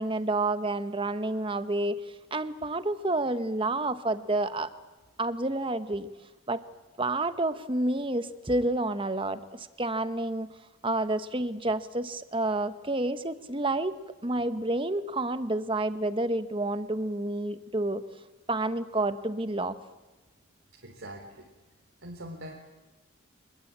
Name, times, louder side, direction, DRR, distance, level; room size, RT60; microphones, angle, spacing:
voice 1, 0.0-2.0 2.3-4.7 5.2-6.1 6.5-6.6 7.0-10.5 10.8-14.0 14.2-18.0 18.5-19.8, right 2 dB, 25° right, 11 dB, 1.1 m, -29 dB
voice 2, 20.7-21.5 22.0-22.5, right 1 dB, 80° right, -1 dB, 3.8 m, -43 dB
26.0 x 21.5 x 8.7 m, 1.2 s
head